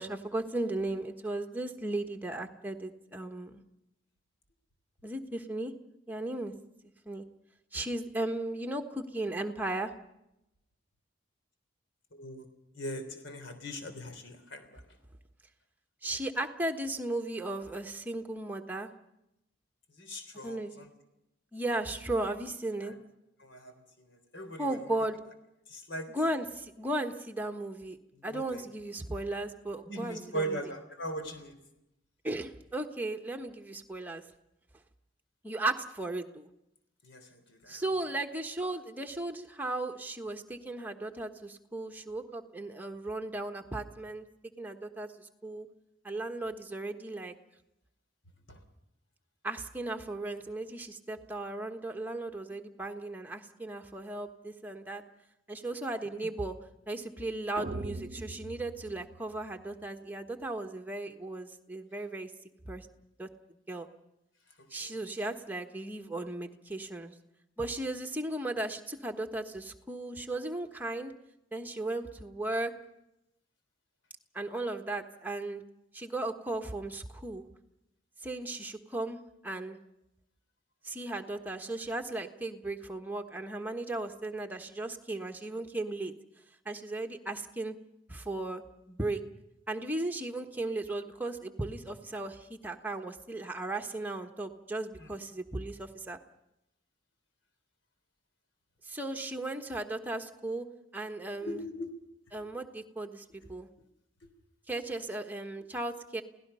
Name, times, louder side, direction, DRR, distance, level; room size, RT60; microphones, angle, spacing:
voice 1, 0.0-3.6 5.0-5.7 6.1-6.5 7.1-7.2 7.7-9.9 16.0-18.9 20.4-20.9 21.5-22.9 24.6-25.2 26.1-28.0 28.2-30.7 32.2-34.2 35.4-36.5 37.7-44.2 44.6-45.1 45.4-45.7 46.0-47.3 49.4-55.0 55.5-56.6 56.9-62.3 62.6-62.9 63.2-63.3 63.7-63.9 64.7-67.1 67.6-71.1 71.5-72.7 74.3-75.6 75.9-77.4 78.2-79.2 79.4-79.8 80.8-86.1 86.6-87.8 88.1-88.6 88.9-89.2 89.7-96.2 98.9-100.7 100.9-101.6 102.3-103.7 104.7-106.2, right 2 dB, 10° right, 4 dB, 1.3 m, -36 dB
voice 2, 12.1-12.4 12.8-14.7 20.0-20.9 22.8-22.9 23.4-23.7 24.3-24.7 25.7-26.1 28.2-28.6 29.9-31.6 37.0-37.8 48.5-48.6 64.8-65.0 95.0-95.1 101.4-101.9, right 1 dB, 70° left, 7 dB, 3.6 m, -39 dB
sound 1, 57.6-59.8, right 2 dB, 40° right, 0.7 m, -42 dB
29.0 x 17.5 x 5.6 m, 0.86 s
head